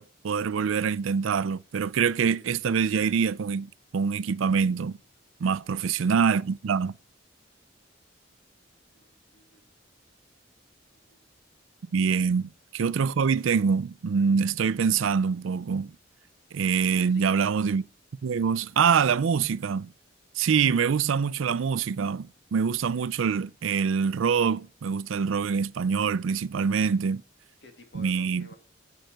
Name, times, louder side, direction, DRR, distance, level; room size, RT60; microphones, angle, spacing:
voice 1, 0.0-5.0 5.4-6.9 11.9-15.9 16.5-17.8 18.2-19.9 20.4-27.2 27.9-28.6, right 6 dB, 85° right, 0.4 m, -25 dB
voice 2, 5.6-6.4 8.9-9.7 11.1-11.2 16.9-17.4 27.6-28.6, equal, 60° left, 2.3 m, -52 dB
10.5 x 7.7 x 6.5 m
head